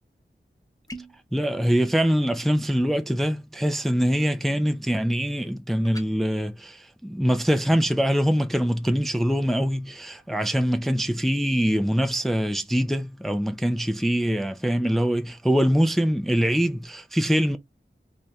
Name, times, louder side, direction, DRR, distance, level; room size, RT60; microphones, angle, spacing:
sound 1, 0.9-1.3 5.8-6.1, right 1 dB, 15° left, 0.9 m, -40 dB
voice 1, 1.3-17.6, equal, ahead, 0.5 m, -23 dB
4.1 x 3.2 x 2.4 m
wide cardioid pair, 45°, 21 cm